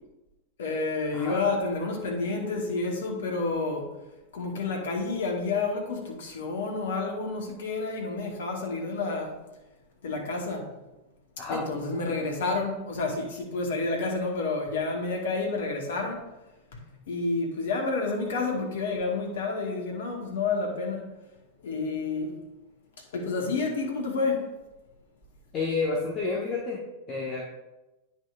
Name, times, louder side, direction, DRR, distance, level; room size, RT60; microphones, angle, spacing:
voice 1, 0.6-3.9 4.3-9.4 10.0-10.7 11.5-16.3 17.1-21.1 21.6-22.4 23.1-24.5, left 3 dB, 60° left, 1.3 m, -29 dB
voice 2, 25.5-26.8 27.1-27.4, left 4 dB, 30° left, 1.1 m, -29 dB
9.4 x 5.7 x 2.5 m
figure-of-eight pair, 90°, 0 cm